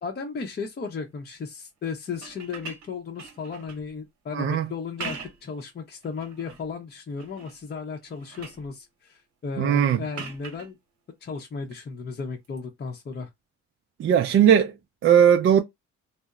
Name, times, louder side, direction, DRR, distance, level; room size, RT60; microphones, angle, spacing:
voice 1, 0.0-10.8 11.2-13.3, left 5 dB, 35° left, 0.6 m, -35 dB
sound 1, 2.1-3.9 4.8-5.5 6.0-6.7 7.2-7.6 8.0-8.7 10.1-10.7 12.4-12.6, right 5 dB, 70° right, 0.9 m, -41 dB
voice 2, 4.3-4.7 9.6-10.0 14.0-14.7 15.0-15.6, right 9 dB, 45° right, 0.4 m, -18 dB
2.8 x 2.0 x 2.3 m
cardioid pair, 90°, 30 cm